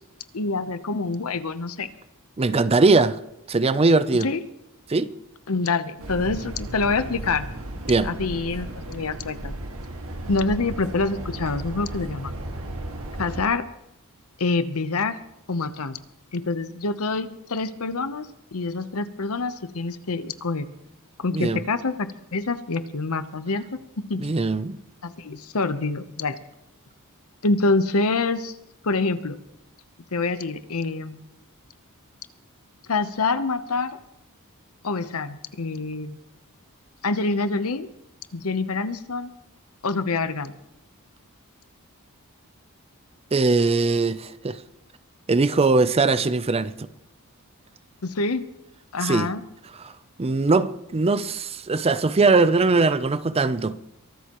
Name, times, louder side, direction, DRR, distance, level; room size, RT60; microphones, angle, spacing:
voice 1, 0.3-1.9 4.2-4.4 5.5-7.5 8.0-9.5 10.3-12.3 13.2-13.6 14.4-15.2 15.5-16.0 16.3-20.7 21.2-24.2 25.0-26.4 27.4-28.5 28.8-29.4 30.1-31.2 32.9-34.0 34.8-36.2 37.0-37.9 38.3-39.3 39.8-40.5 48.0-48.4 48.9-49.4, left 3 dB, 75° left, 0.9 m, -26 dB
voice 2, 2.4-3.2 3.5-4.3 4.9-5.1 7.9-8.1 21.3-21.6 24.2-24.8 43.3-44.6 45.3-46.9 49.0-49.3 49.8-49.9 50.2-53.8, right 3 dB, 25° right, 0.5 m, -20 dB
sound 1, 6.0-13.5, right 1 dB, 70° right, 1.9 m, -35 dB
23.5 x 13.0 x 3.0 m
head